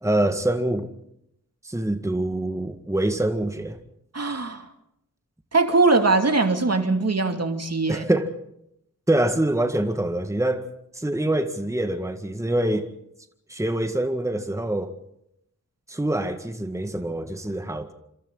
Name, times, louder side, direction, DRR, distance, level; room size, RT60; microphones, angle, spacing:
voice 1, 0.0-0.9 1.6-3.8 7.9-8.3 9.1-10.6 10.9-12.9 13.5-14.9 15.9-17.9, right 1 dB, 10° right, 1.9 m, -25 dB
voice 2, 4.1-4.7 5.5-8.0, right 3 dB, 50° right, 2.6 m, -21 dB
27.5 x 26.5 x 4.0 m
wide cardioid pair, 65°, 32 cm